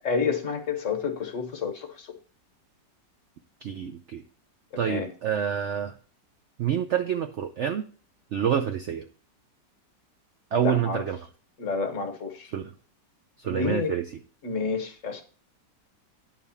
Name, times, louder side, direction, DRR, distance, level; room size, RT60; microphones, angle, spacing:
voice 1, 0.0-2.1 4.7-5.1 10.5-11.0 11.6-12.5 13.4-14.0 14.4-15.2, left 5 dB, 50° left, 5 dB, 1.3 m, -29 dB
voice 2, 3.6-4.2 4.8-5.9 6.6-7.8 8.3-9.0 10.5-11.2 12.5-12.7 13.4-14.1, right 9 dB, 90° right, 6 dB, 0.6 m, -27 dB
9.4 x 3.5 x 6.9 m, 0.40 s
omnidirectional pair, 1.9 m